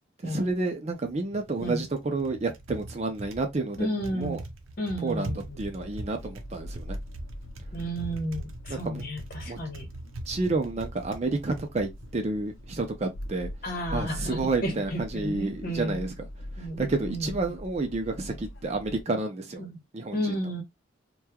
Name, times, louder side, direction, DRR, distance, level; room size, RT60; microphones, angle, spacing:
voice 1, 0.2-4.4 5.0-7.0 8.7-9.0 9.5-9.6 10.3-13.5 13.9-16.1 16.6-19.6 19.9-20.4, right 3 dB, 35° right, 0.5 m, -30 dB
Typing, 0.9-13.4, right 2 dB, 85° right, 0.6 m, -43 dB
voice 2, 3.8-4.4 4.8-5.7 7.7-9.9 13.6-16.1 16.6-17.3 19.6-19.8 20.1-20.6, equal, 45° left, 1.0 m, -33 dB
sound 1, 5.4-19.0, equal, 70° left, 0.6 m, -42 dB
3.0 x 2.2 x 2.3 m
head